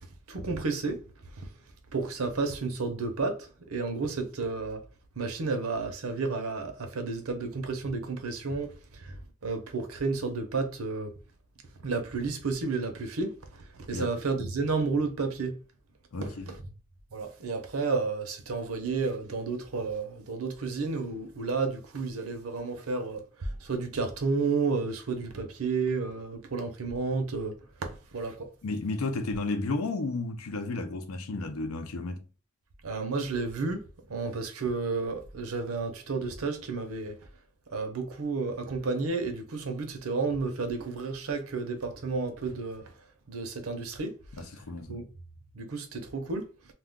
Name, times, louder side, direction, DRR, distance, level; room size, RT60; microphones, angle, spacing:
voice 1, 0.3-1.0 1.4-1.5 1.9-4.8 5.2-11.1 11.8-15.6 16.2-16.6 17.1-28.5 32.8-33.8 34.1-37.2 37.7-42.9 43.3-44.2 44.9-45.1 45.5-46.5, right 4 dB, 85° right, 0.7 m, -31 dB
voice 2, 16.1-16.6 28.6-32.2 44.4-45.0, left 3 dB, 85° left, 0.6 m, -33 dB
2.4 x 2.2 x 3.6 m
head